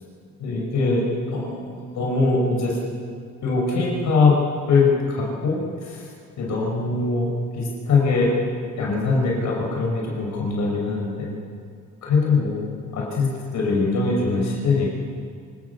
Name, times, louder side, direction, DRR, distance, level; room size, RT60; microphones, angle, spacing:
voice 1, 0.4-2.8 3.4-4.3 4.7-5.6 5.8-6.0 6.4-7.3 7.5-8.3 8.8-11.3 12.0-12.7 12.9-13.3 13.5-14.9, left 4 dB, 65° left, -2 dB, 6.1 m, -22 dB
26.5 x 18.5 x 7.2 m, 2.2 s
cardioid pair, 130°, 31 cm